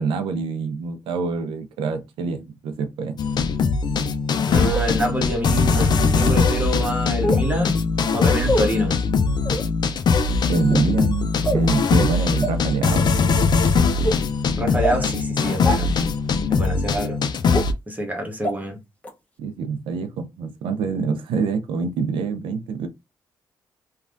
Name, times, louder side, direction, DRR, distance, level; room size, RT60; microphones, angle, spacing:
voice 1, 0.0-3.2 10.4-13.1 19.4-22.9, right 5 dB, 90° right, 0.5 m, -25 dB
sound 1, 3.2-17.7, left 4 dB, 55° left, 0.4 m, -21 dB
voice 2, 4.5-7.8 8.1-8.9 14.6-15.9 16.5-17.2 17.9-18.8, equal, 20° right, 1.0 m, -26 dB
sound 2, 4.7-4.8 5.7-5.8 7.2-7.5 8.4-8.6 9.4-9.6 10.6-10.9 11.4-11.7 12.4-12.5 13.1-13.3 14.0-14.1 14.8-15.0 15.6-15.7 16.6-16.7 17.5-17.6 18.4-18.5 19.0-19.1, right 1 dB, 15° left, 0.9 m, -24 dB
3.2 x 2.3 x 2.5 m
cardioid pair, 70°, 9 cm